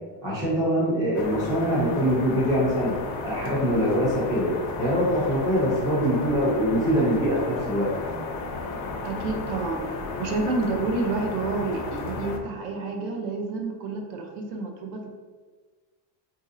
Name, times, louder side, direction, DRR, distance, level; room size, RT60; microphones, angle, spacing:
voice 1, 0.2-2.9 3.2-4.5 4.8-8.2, equal, 10° right, -7 dB, 0.3 m, -23 dB
sound 1, 1.1-12.4, left 3 dB, 55° left, 0.5 m, -34 dB
voice 2, 9.0-15.1, right 3 dB, 80° right, 3 dB, 0.7 m, -29 dB
3.9 x 2.6 x 2.5 m, 1.4 s
cardioid pair, 180°, 49 cm